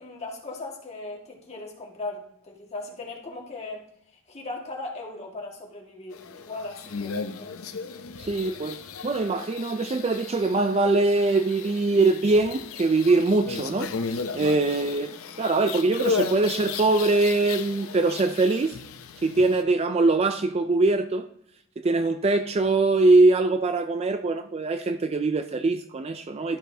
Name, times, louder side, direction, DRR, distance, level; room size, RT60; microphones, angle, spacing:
voice 1, 0.0-3.8 4.3-7.6, left 2 dB, 30° left, -1 dB, 1.8 m, -38 dB
sound 1, 6.1-19.6, left 5 dB, 75° left, 0.6 m, -35 dB
voice 2, 8.2-13.9 14.3-15.1 15.4-18.8 19.2-21.2 21.8-26.6, right 3 dB, 30° right, 9 dB, 0.4 m, -22 dB
12.5 x 5.9 x 2.7 m, 0.72 s
head